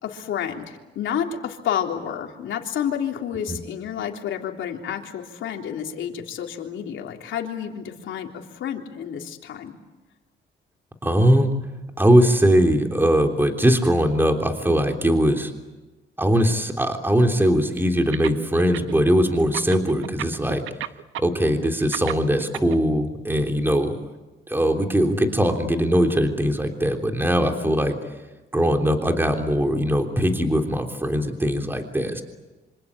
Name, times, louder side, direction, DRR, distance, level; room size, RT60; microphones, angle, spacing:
voice 1, 0.0-9.8 27.4-27.7, left 9 dB, 75° left, 2 dB, 3.5 m, -30 dB
voice 2, 11.0-11.5 12.0-15.5 16.2-20.6 21.2-23.9 24.5-27.9 28.5-32.2, equal, 10° right, 4 dB, 3.4 m, -20 dB
sound 1, 18.1-19.1 19.4-22.8, right 13 dB, 85° right, 1.0 m, -31 dB
26.5 x 26.0 x 8.7 m, 1.1 s
cardioid pair, 90°, 20 cm